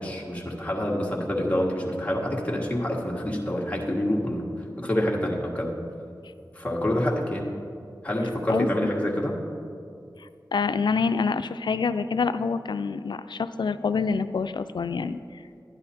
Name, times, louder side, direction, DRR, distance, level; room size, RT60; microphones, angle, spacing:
voice 1, 0.0-5.7 6.5-7.5 8.0-9.4, left 1 dB, 15° left, -3 dB, 1.4 m, -27 dB
voice 2, 10.2-15.4, left 5 dB, 90° left, 12 dB, 0.3 m, -27 dB
11.5 x 9.9 x 4.2 m, 2.4 s
wide cardioid pair, 70°, 8 cm